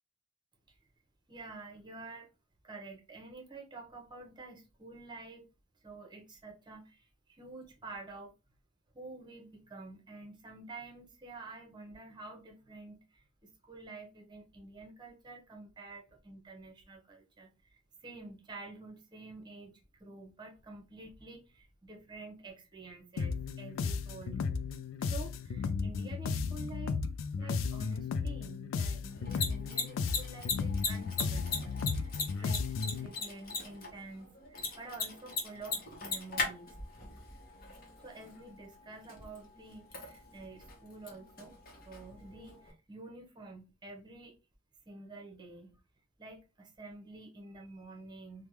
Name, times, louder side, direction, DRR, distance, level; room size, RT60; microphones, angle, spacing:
voice 1, 1.3-2.3 2.6-5.5 5.8-8.3 8.9-24.4 25.0-27.0 27.4-36.8 38.0-41.5 41.8-44.3 44.9-45.8 46.2-48.5, right 3 dB, 25° right, 0.7 m, -49 dB
sound 1, 23.2-33.1, left 5 dB, 90° left, 0.3 m, -34 dB
Mechanisms, 29.1-42.7, left 4 dB, 50° left, 1.0 m, -40 dB
3.4 x 2.1 x 2.9 m
head